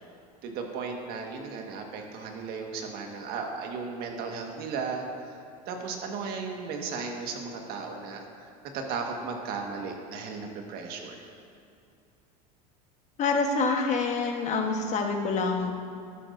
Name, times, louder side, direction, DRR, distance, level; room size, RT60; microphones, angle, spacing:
voice 1, 0.4-5.0 5.7-8.2 8.7-11.3, right 5 dB, 55° right, 2 dB, 1.6 m, -35 dB
voice 2, 13.2-15.7, left 4 dB, 35° left, 3 dB, 1.3 m, -26 dB
12.5 x 12.0 x 2.6 m, 2.5 s
supercardioid pair, 115°, 19 cm